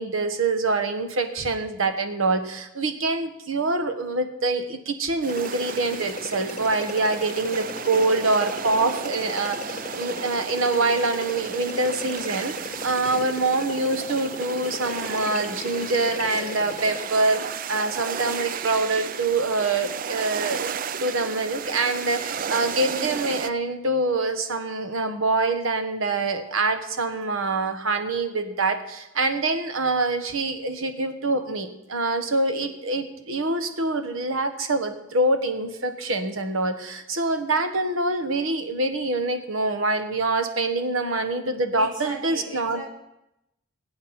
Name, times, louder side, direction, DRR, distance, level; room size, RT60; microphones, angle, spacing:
voice 1, 0.0-20.7 21.0-42.8, right 2 dB, 85° right, 7 dB, 1.3 m, -25 dB
sound 1, 5.2-23.5, right 7 dB, 45° right, 0.4 m, -34 dB
sound 2, 5.3-17.1, left 3 dB, 35° left, 0.5 m, -38 dB
voice 2, 41.7-42.9, right 1 dB, 70° right, -2 dB, 2.7 m, -35 dB
21.0 x 8.6 x 4.3 m, 0.88 s
head